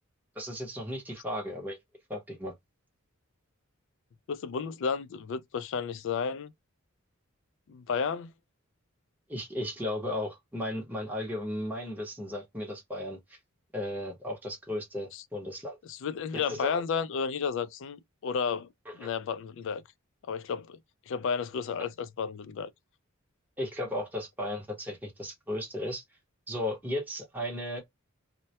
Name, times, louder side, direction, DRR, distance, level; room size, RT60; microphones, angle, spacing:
voice 1, 0.3-1.8 2.1-2.5 9.3-13.4 13.7-15.8 16.3-16.8 19.0-19.1 23.6-26.0 26.5-27.8, left 1 dB, 10° right, 0.8 m, -35 dB
voice 2, 4.3-6.5 7.7-8.3 15.1-15.2 15.9-18.7 18.9-19.8 20.3-20.8 21.1-22.7, left 6 dB, 60° left, 0.3 m, -32 dB
2.1 x 2.1 x 2.7 m
head